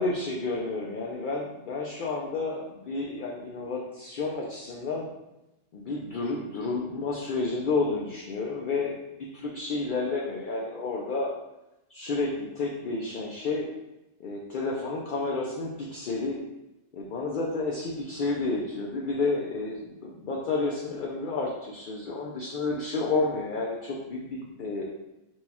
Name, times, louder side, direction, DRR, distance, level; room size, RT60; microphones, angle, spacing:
voice 1, 0.0-5.1 5.7-9.0 9.3-11.3 11.9-13.7 14.2-16.4 16.9-24.8, left 3 dB, 60° left, -2 dB, 0.5 m, -30 dB
4.5 x 2.3 x 4.2 m, 0.95 s
omnidirectional pair, 1.3 m